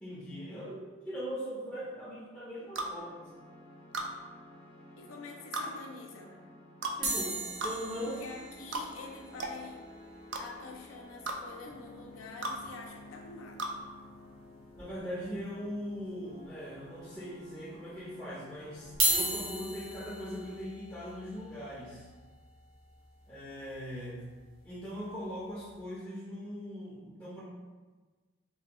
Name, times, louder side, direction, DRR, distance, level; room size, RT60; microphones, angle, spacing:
voice 1, 0.0-3.3 7.0-8.2 14.7-22.1 23.3-24.2 24.6-27.4, equal, 5° left, -10 dB, 0.5 m, -40 dB
sound 1, 2.7-19.6, left 1 dB, 50° left, 0.7 m, -53 dB
sound 2, 2.8-2.9 3.9-4.1 5.5-5.7 6.8-7.0 7.6-7.8 8.7-8.9 9.4-9.6 10.3-10.4 11.3-11.4 12.4-12.6 13.6-13.8, right 2 dB, 60° right, 0.3 m, -34 dB
voice 2, 5.0-6.3 8.0-9.8 10.4-13.6, left 3 dB, 85° left, 0 dB, 0.4 m, -46 dB
sound 3, 7.0-11.4 11.7-11.8 11.9-12.1 12.5-12.6 14.0-14.1 14.8-15.3 15.8-15.9 16.7-16.8 18.8-24.9 25.5-25.7, right 1 dB, 85° right, 1.0 m, -37 dB
3.3 x 2.2 x 2.9 m, 1.3 s
head